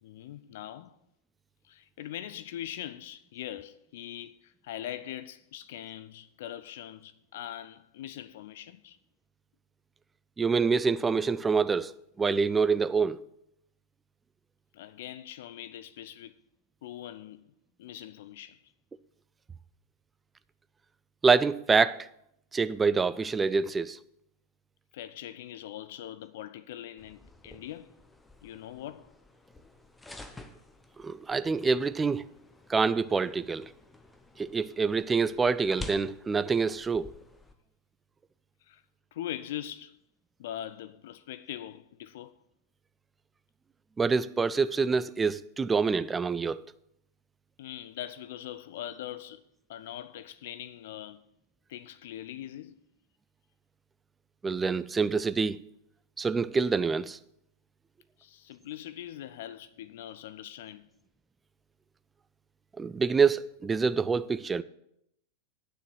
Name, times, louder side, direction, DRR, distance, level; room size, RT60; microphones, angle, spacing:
voice 1, 0.0-1.0 1.6-9.0 14.7-16.3 16.8-17.5 17.8-18.7 24.9-28.0 28.4-29.1 38.6-38.8 39.1-40.0 40.4-42.3 47.6-49.4 49.7-51.2 51.7-52.8 58.2-60.9, left 12 dB, 55° left, 0.4 m, -42 dB
voice 2, 10.4-13.2 21.2-22.1 22.5-24.0 31.0-32.2 32.7-33.7 34.4-37.1 44.0-46.6 54.4-55.6 56.2-57.2 62.8-64.6, right 5 dB, 15° right, 0.4 m, -26 dB
sound 1, 27.0-37.5, left 2 dB, 10° left, 0.9 m, -49 dB
9.6 x 6.8 x 6.2 m
figure-of-eight pair, 90°, 0 cm